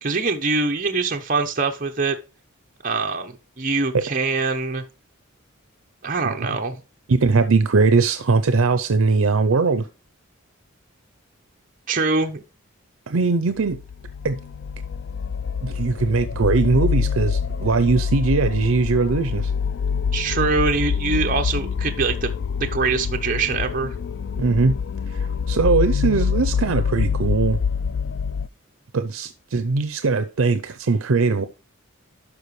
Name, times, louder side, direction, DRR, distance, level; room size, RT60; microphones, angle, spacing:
voice 1, 0.0-2.2 2.8-4.8 6.0-6.8 11.9-12.4 20.1-22.3 22.6-23.9, right 4 dB, 40° right, 0.9 m, -23 dB
voice 2, 7.1-9.9 13.1-13.8 14.2-14.4 15.6-19.5 24.4-24.8 25.1-27.6 28.9-31.5, right 4 dB, 80° right, 0.6 m, -20 dB
sound 1, 13.7-28.5, left 6 dB, 55° left, 0.3 m, -25 dB
12.0 x 4.9 x 3.2 m
head